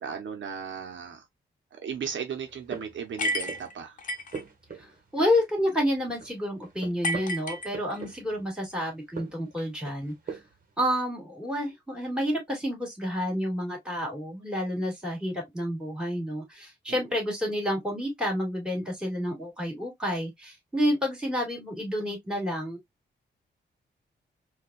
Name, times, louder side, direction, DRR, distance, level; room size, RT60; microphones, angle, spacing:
voice 1, 0.0-1.2 1.8-3.9 7.9-8.1 16.9-17.0, right 7 dB, 80° right, 0.9 m, -36 dB
sound 1, 2.4-3.8 4.1-5.7 5.9-8.5 9.0-10.7, right 5 dB, 50° right, 1.3 m, -42 dB
sound 2, 3.2-4.4 7.0-8.2, left 1 dB, 45° left, 0.9 m, -31 dB
voice 2, 4.8-10.4 10.8-22.8, equal, 5° right, 2.3 m, -29 dB
4.4 x 2.5 x 2.4 m
cardioid pair, 100°, 19 cm